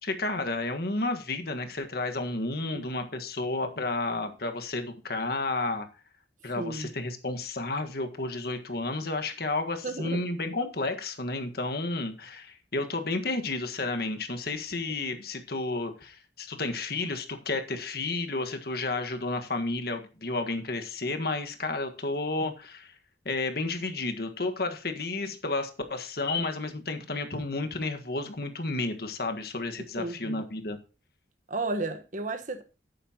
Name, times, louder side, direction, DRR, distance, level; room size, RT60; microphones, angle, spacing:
voice 1, 0.0-5.9 6.4-22.9 23.2-30.8, left 2 dB, 60° left, 1.6 m, -31 dB
voice 2, 6.6-6.9 9.8-10.2 30.0-30.4 31.5-32.6, right 2 dB, 45° right, 1.3 m, -33 dB
11.0 x 9.4 x 2.9 m
head